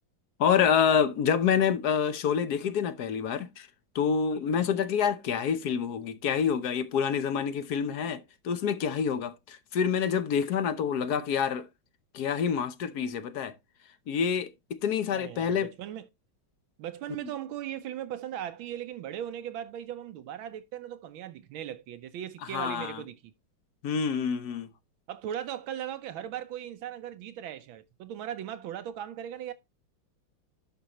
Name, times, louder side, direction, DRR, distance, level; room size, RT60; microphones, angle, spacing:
voice 1, 0.4-3.7 3.9-11.7 12.1-13.5 14.1-15.7 22.4-23.0 23.8-24.7, left 7 dB, 60° left, 1.1 m, -27 dB
voice 2, 15.1-16.0 16.8-23.2 25.1-29.5, right 10 dB, 75° right, 1.4 m, -38 dB
11.5 x 5.5 x 2.9 m
omnidirectional pair, 2.3 m